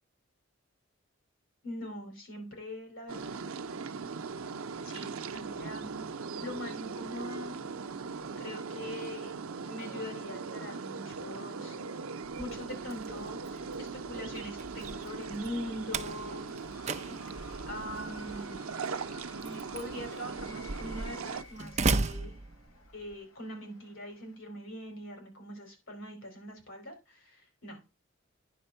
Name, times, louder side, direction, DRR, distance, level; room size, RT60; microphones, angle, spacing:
voice 1, 1.6-3.4 4.8-6.0 6.3-7.6 8.4-11.8 12.4-16.5 16.8-18.7 19.4-22.4 22.9-27.8, left 1 dB, 70° left, 3 dB, 4.4 m, -42 dB
sound 1, 3.1-21.4, right 5 dB, 90° right, 0.7 m, -40 dB
Slam, 12.2-23.1, right 3 dB, 35° right, 0.5 m, -37 dB
sound 2, 14.4-24.4, left 2 dB, 90° left, 2.1 m, -54 dB
10.0 x 4.4 x 5.5 m, 0.28 s
head